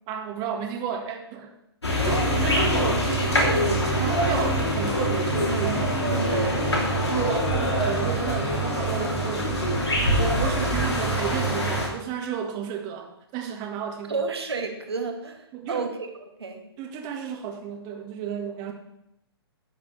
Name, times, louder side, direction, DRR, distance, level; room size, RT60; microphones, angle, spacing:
voice 1, 0.1-1.5 1.9-6.4 7.1-9.8 10.2-14.2 15.5-15.9 16.8-18.7, right 8 dB, 30° right, 4 dB, 1.5 m, -32 dB
sound 1, 1.8-11.9, equal, 80° left, 2.9 m, -24 dB
voice 2, 5.6-6.7 10.4-10.6 14.1-15.9 16.4-16.6, right 4 dB, 70° right, 4 dB, 1.8 m, -31 dB
12.5 x 9.2 x 3.3 m, 0.81 s
figure-of-eight pair, 125°, 14 cm